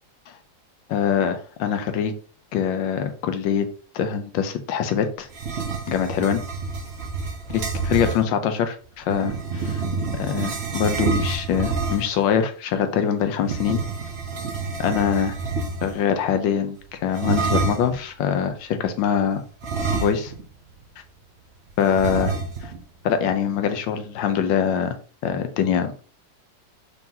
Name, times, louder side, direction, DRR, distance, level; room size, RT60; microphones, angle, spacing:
voice 1, 0.9-2.1 2.5-3.7 3.9-5.3 5.9-6.4 7.5-9.8 10.2-13.8 14.8-15.4 15.8-19.4 19.9-20.3 21.8-22.3 22.6-22.7 23.0-25.0 25.2-25.9, left 8 dB, 90° left, 9 dB, 1.4 m, -23 dB
sound 1, 5.3-8.2 9.1-12.2 13.4-16.0 17.1-18.0 19.6-20.5 20.8-20.9 21.9-22.8, right 4 dB, 60° right, 0.7 m, -27 dB
4.2 x 3.7 x 2.7 m, 0.41 s
omnidirectional pair, 2.0 m